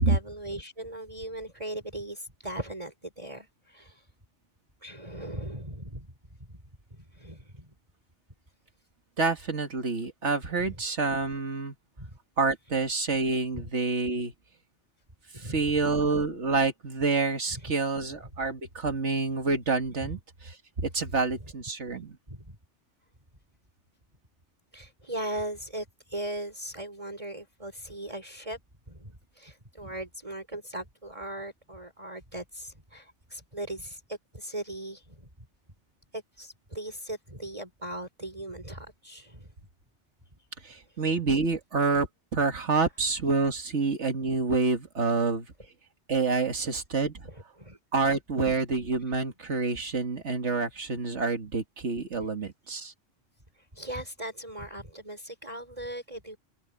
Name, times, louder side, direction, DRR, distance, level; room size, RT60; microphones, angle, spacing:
voice 1, 0.0-4.1 4.8-6.1 6.5-6.6 6.9-7.7 10.6-10.8 12.0-12.2 13.5-13.7 15.3-15.7 17.5-17.7 20.0-20.2 21.9-22.6 24.7-28.6 28.9-35.3 36.1-39.5 40.9-41.0 45.2-45.3 47.2-47.8 53.6-56.4, right 1 dB, 25° right, 5.3 m, -39 dB
voice 2, 9.2-11.7 12.4-14.3 15.4-20.2 20.8-22.2 40.6-45.5 46.1-47.2 47.9-52.9, right 4 dB, 65° right, 2.1 m, -27 dB
omnidirectional pair, 1.3 m